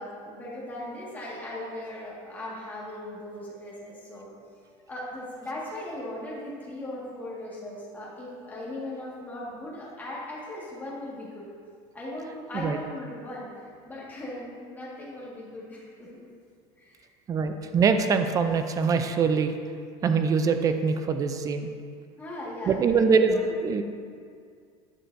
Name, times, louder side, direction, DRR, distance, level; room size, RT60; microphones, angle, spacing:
voice 1, 0.0-4.3 4.9-11.4 11.9-13.5 13.9-16.3 16.8-17.0 22.2-22.8 23.3-23.4, left 1 dB, 10° left, -6 dB, 1.7 m, -38 dB
voice 2, 17.3-19.6 20.0-21.7 22.7-23.8, right 5 dB, 25° right, 8 dB, 0.4 m, -23 dB
10.0 x 6.5 x 2.6 m, 2.2 s
cardioid pair, 140°, 14 cm